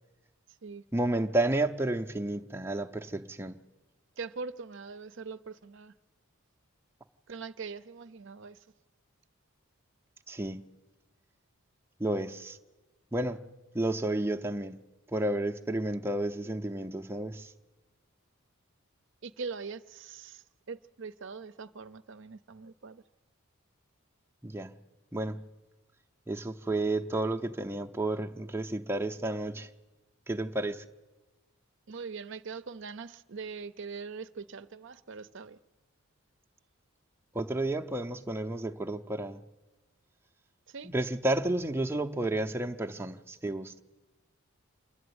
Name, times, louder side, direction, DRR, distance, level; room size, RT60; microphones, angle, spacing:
voice 1, 0.9-3.6 10.3-10.7 12.0-12.6 13.1-13.4 13.7-14.8 15.1-17.5 24.4-24.7 25.1-25.4 26.3-29.7 30.3-30.8 37.3-39.4 40.8-43.8, right 1 dB, 10° right, 0.6 m, -31 dB
voice 2, 4.2-5.9 7.3-8.6 19.2-23.0 31.9-35.6 40.7-40.9, right 5 dB, 55° right, 0.6 m, -42 dB
27.0 x 11.5 x 9.5 m
head